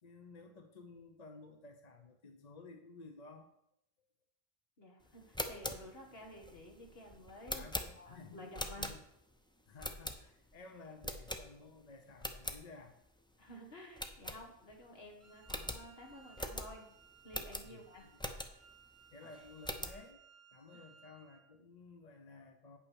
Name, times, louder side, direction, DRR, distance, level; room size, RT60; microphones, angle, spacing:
voice 1, 0.0-3.5 7.5-9.0 9.7-12.9 17.6-17.8 19.1-20.2 20.5-22.8, left 3 dB, 45° left, 5 dB, 0.9 m, -54 dB
voice 2, 4.8-7.7 7.9-8.9 13.4-16.9 17.2-18.1 20.7-20.9, left 1 dB, 70° left, 1 dB, 2.1 m, -52 dB
sound 1, 5.2-9.3 9.8-10.5 11.0-11.8 12.1-12.6 13.1-13.2 13.4-13.5 14.0-14.9 15.1-15.2 15.5-18.8 19.2-20.0, left 1 dB, 5° left, 0.5 m, -42 dB
Wind instrument woodwind instrument, 15.2-21.5, right 6 dB, 35° right, 0.8 m, -62 dB
8.5 x 5.9 x 6.4 m, 0.78 s
omnidirectional pair, 1.0 m